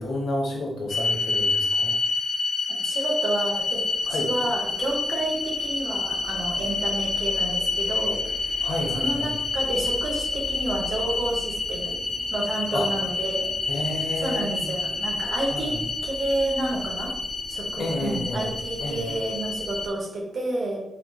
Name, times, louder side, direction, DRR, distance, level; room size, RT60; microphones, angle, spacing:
voice 1, 0.0-1.9 4.1-4.3 8.6-9.3 12.7-12.8 13.7-14.7 15.5-15.8 17.8-18.5 18.8-19.0, left 1 dB, 80° left, -1 dB, 0.8 m, -30 dB
sound 1, 0.9-19.9, left 3 dB, 40° left, 0.4 m, -28 dB
voice 2, 2.8-3.8 4.1-8.6 8.9-11.9 12.3-13.5 14.2-15.7 16.0-17.1 17.5-20.8, right 2 dB, 70° right, -1 dB, 0.8 m, -30 dB
3.2 x 2.9 x 2.2 m, 0.84 s
cardioid pair, 70°, 0 cm